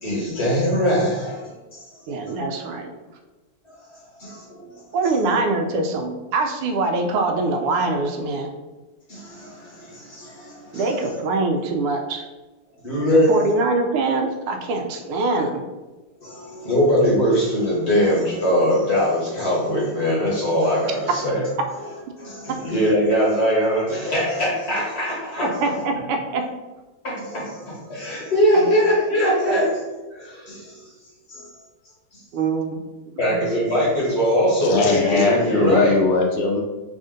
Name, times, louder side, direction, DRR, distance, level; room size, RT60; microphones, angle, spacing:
voice 1, 0.0-1.8 2.3-2.4 4.2-4.6 9.1-10.9 12.8-13.3 16.2-21.4 22.1-25.6 27.0-29.8 30.1-30.7 31.3-31.5 33.2-36.0, equal, 40° left, -6 dB, 1.2 m, -21 dB
voice 2, 2.1-2.9 4.9-8.5 10.7-12.3 13.1-15.6 25.4-26.4 28.6-28.7 32.3-33.4, right 3 dB, 85° right, 4 dB, 1.5 m, -24 dB
voice 3, 34.6-36.6, left 3 dB, 85° left, 2 dB, 1.6 m, -21 dB
4.1 x 2.6 x 3.7 m, 1.2 s
omnidirectional pair, 2.4 m